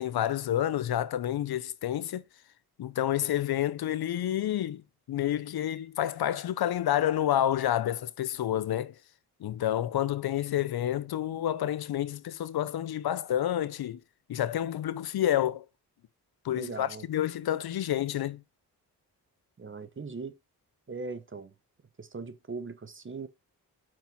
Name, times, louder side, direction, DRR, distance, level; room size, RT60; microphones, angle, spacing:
voice 1, 0.0-2.2 2.8-4.8 5.1-8.9 9.4-14.0 14.3-15.6 16.4-18.4, left 11 dB, 75° left, 0.7 m, -29 dB
voice 2, 16.6-17.0 19.6-20.4 20.9-21.5 22.0-23.3, right 4 dB, 30° right, 1.1 m, -39 dB
5.9 x 4.5 x 5.3 m
cardioid pair, 55°, 38 cm